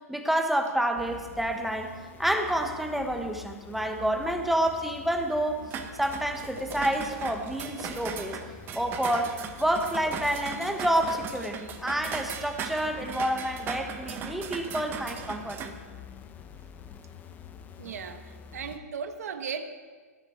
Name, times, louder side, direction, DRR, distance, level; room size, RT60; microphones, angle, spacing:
voice 1, 0.1-1.9 2.2-5.7 6.0-8.4 8.7-15.7, right 1 dB, ahead, 5 dB, 1.3 m, -28 dB
sound 1, 1.0-18.8, left 7 dB, 20° left, 1.1 m, -47 dB
sound 2, 5.7-15.7, right 7 dB, 25° right, 1.3 m, -38 dB
voice 2, 17.8-18.2 18.5-19.8, right 6 dB, 75° right, 8 dB, 1.5 m, -36 dB
19.0 x 10.5 x 4.5 m, 1.5 s
hypercardioid pair, 135°, 9 cm